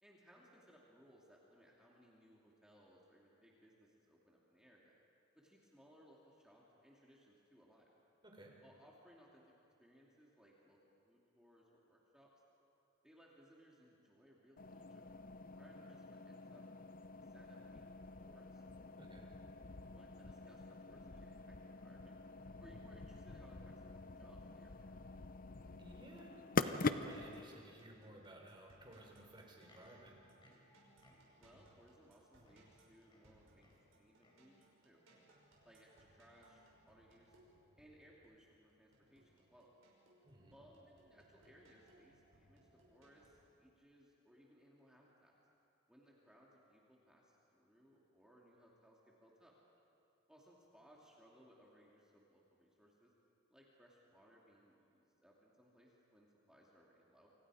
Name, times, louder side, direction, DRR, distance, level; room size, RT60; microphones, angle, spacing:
voice 1, 0.0-4.9 5.4-7.9 8.6-9.4 9.8-10.8 11.0-12.3 13.0-15.0 15.6-16.6 17.3-18.6 19.8-22.2 22.6-24.9 31.4-35.0 35.6-37.4 37.8-39.7 40.5-45.3 45.9-49.5 50.3-53.1 53.5-57.3, equal, 5° right, -4 dB, 2.6 m, -65 dB
sound 1, 14.6-27.4, left 3 dB, 45° left, 0.7 m, -45 dB
voice 2, 25.8-26.3 26.6-30.2 40.2-40.5, right 1 dB, 25° right, 0 dB, 4.3 m, -56 dB
sound 2, 26.6-43.3, right 1 dB, 80° right, 6.1 m, -69 dB
Livestock farm animals working animals, 29.5-31.6 32.1-32.2 32.4-33.9 34.2-34.5 35.0-35.4 36.1-36.2, left 1 dB, 25° left, 4.1 m, -69 dB
29.0 x 26.0 x 5.0 m, 2.7 s
head